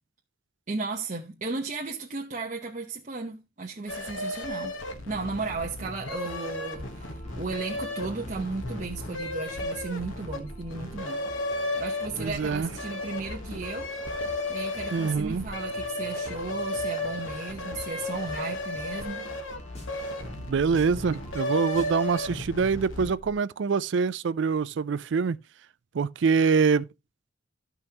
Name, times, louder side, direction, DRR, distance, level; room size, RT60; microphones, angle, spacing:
voice 1, 0.7-4.8 5.1-11.2 11.8-13.9 14.5-19.3, right 3 dB, 40° right, 1.0 m, -35 dB
sound 1, 3.9-23.3, left 1 dB, 80° left, 1.3 m, -34 dB
sound 2, 6.2-22.1, equal, 35° left, 3.2 m, -47 dB
voice 2, 12.2-12.7 14.9-15.4 20.4-25.4 25.9-26.9, right 5 dB, 65° right, 0.4 m, -25 dB
13.0 x 5.5 x 2.9 m
head